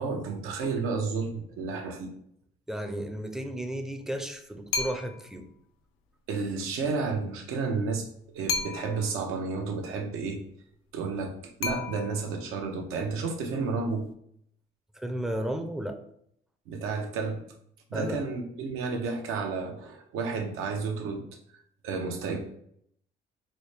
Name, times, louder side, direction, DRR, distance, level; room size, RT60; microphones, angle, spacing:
voice 1, 0.0-2.1 6.3-8.1 8.3-10.4 10.9-14.1 16.7-17.4 17.9-21.2 21.8-22.4, right 4 dB, 85° right, 3 dB, 0.7 m, -31 dB
voice 2, 2.7-5.5 15.0-16.0 17.9-18.2, right 1 dB, ahead, 6 dB, 0.4 m, -33 dB
sound 1, 4.7-5.3 8.5-9.2 11.6-12.4, left 4 dB, 85° left, 0.4 m, -33 dB
4.1 x 2.1 x 3.2 m, 0.68 s
cardioid pair, 85°, 21 cm